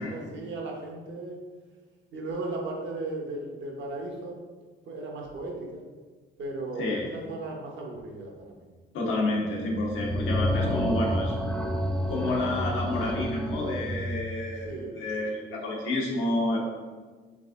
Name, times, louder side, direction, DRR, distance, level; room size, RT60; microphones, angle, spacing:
voice 1, 0.0-1.4 2.1-4.4 4.9-5.8 6.4-8.7 14.6-15.0, right 2 dB, 70° right, 0 dB, 1.0 m, -36 dB
voice 2, 8.9-11.3 12.1-16.7, left 2 dB, 85° left, -2 dB, 1.2 m, -29 dB
sound 1, 9.7-14.3, equal, 5° left, 0.4 m, -29 dB
4.0 x 3.4 x 3.7 m, 1.4 s
cardioid pair, 90°, 20 cm